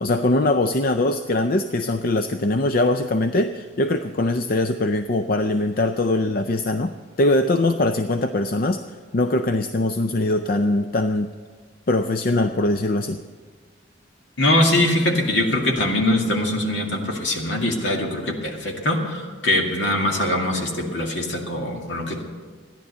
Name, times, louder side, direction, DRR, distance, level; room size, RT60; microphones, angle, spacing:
voice 1, 0.0-6.9 7.2-8.8 9.1-11.3 11.9-13.2, left 2 dB, 45° left, 8 dB, 0.5 m, -22 dB
voice 2, 14.4-22.2, left 1 dB, 70° left, 0 dB, 2.2 m, -22 dB
14.5 x 10.5 x 6.7 m, 1.5 s
head